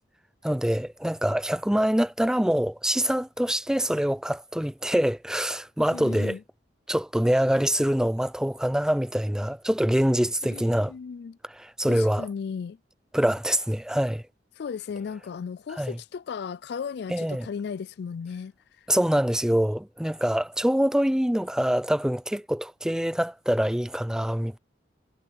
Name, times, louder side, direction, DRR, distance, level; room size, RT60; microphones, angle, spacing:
voice 1, 0.4-6.4 6.9-10.9 11.6-12.3 13.1-14.2 15.8-15.9 17.1-17.5 18.9-24.6, equal, 5° right, 0.5 m, -25 dB
voice 2, 5.9-6.4 10.5-11.4 11.9-12.8 14.6-18.9, left 6 dB, 65° left, 0.4 m, -36 dB
head